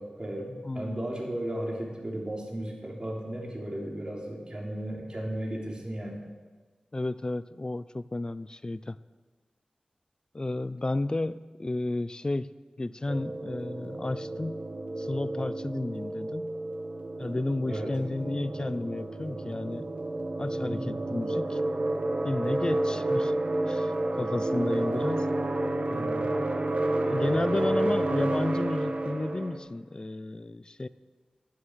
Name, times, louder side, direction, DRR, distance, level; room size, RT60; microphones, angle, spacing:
voice 1, 0.0-6.2 17.7-18.0 20.6-20.8, right 1 dB, 35° right, -1 dB, 3.3 m, -35 dB
voice 2, 0.6-1.0 6.9-9.0 10.3-12.5 12.8-14.6 15.0-16.6 17.2-19.8 20.4-21.6 22.2-23.3 23.7-25.3 25.9-30.9, left 2 dB, 30° left, 16 dB, 0.5 m, -32 dB
sound 1, 13.1-29.6, right 2 dB, 60° right, 1.4 m, -30 dB
11.5 x 11.0 x 6.3 m, 1.4 s
cardioid pair, 45°, 3 cm